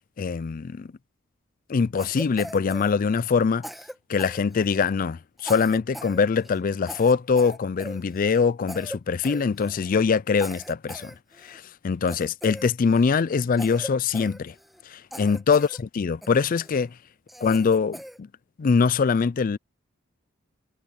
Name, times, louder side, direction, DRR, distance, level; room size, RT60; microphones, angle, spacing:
voice 1, 0.2-0.9 1.7-3.7 4.1-11.1 11.4-14.5 14.9-16.9 17.4-18.3 18.6-19.6, left 5 dB, 45° left, 0.4 m, -23 dB
Cough, 2.0-3.4 3.6-4.9 5.4-6.2 6.4-6.6 6.9-8.4 8.7-9.0 9.2-9.9 10.4-11.6 12.1-13.1 13.6-14.8 15.1-15.8 16.2-16.8 17.3-18.2, equal, ahead, 1.5 m, -40 dB
head